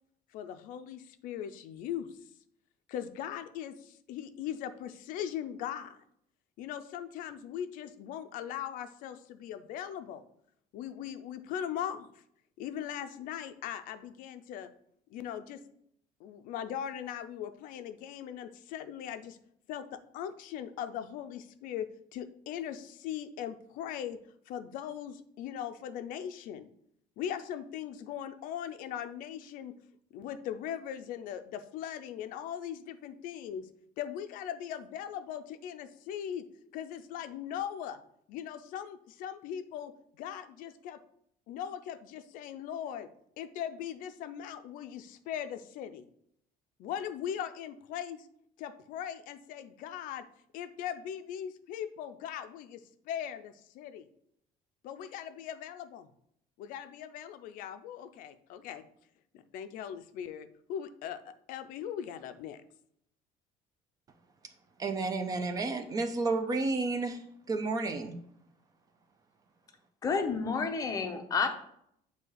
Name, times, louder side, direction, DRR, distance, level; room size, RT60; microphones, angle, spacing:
voice 1, 0.3-2.1 2.9-6.0 6.6-10.2 10.7-12.1 12.6-14.7 15.1-15.6 16.2-19.4 19.7-24.2 24.5-26.7 27.2-29.7 30.1-33.7 34.0-36.4 36.7-38.0 38.3-41.0 41.5-43.1 43.4-46.0 46.8-48.3 48.6-50.2 50.5-54.1 54.8-56.1 56.6-58.8 59.3-62.6, left 9 dB, 60° left, 0.5 m, -39 dB
voice 2, 64.8-67.2 67.5-68.2, right 3 dB, 25° right, 0.5 m, -31 dB
voice 3, 70.0-71.5, left 5 dB, 20° left, 0.6 m, -30 dB
7.7 x 2.8 x 4.6 m
cardioid pair, 180°, 15 cm